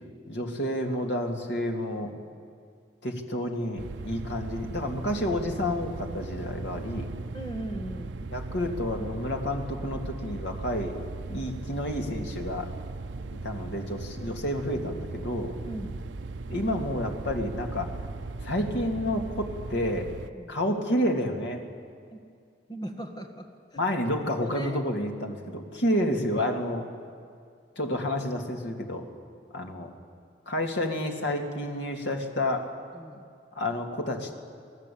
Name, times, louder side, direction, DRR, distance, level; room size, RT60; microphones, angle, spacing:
voice 1, 0.3-2.1 3.0-7.1 8.3-10.9 11.3-12.7 13.3-15.5 16.5-17.9 18.4-20.1 20.5-21.6 23.8-26.8 27.8-29.0 29.5-29.9 30.5-32.7 33.5-34.4, left 1 dB, 70° left, 2 dB, 2.7 m, -30 dB
sound 1, 3.8-20.3, right 3 dB, 80° right, 0.7 m, -38 dB
voice 2, 7.3-8.2 15.6-16.0 20.3-20.5 22.1-22.2 22.7-23.8 24.4-24.8 25.9-26.0 32.9-33.2, right 1 dB, 20° left, 4 dB, 1.8 m, -38 dB
27.5 x 18.5 x 8.7 m, 2.3 s
head